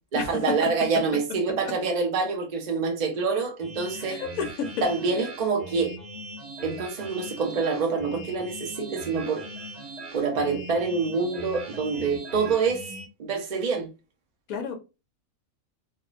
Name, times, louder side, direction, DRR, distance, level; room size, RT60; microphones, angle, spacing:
voice 1, 0.1-4.2 4.8-6.0 6.6-9.4 10.1-12.9 13.2-13.9, right 4 dB, 65° right, 0.4 m, -26 dB
sound 1, 3.6-13.1, right 1 dB, 35° right, 0.8 m, -40 dB
voice 2, 3.9-4.7 14.5-14.8, left 5 dB, 75° left, 1.2 m, -31 dB
3.5 x 2.1 x 2.4 m
omnidirectional pair, 1.5 m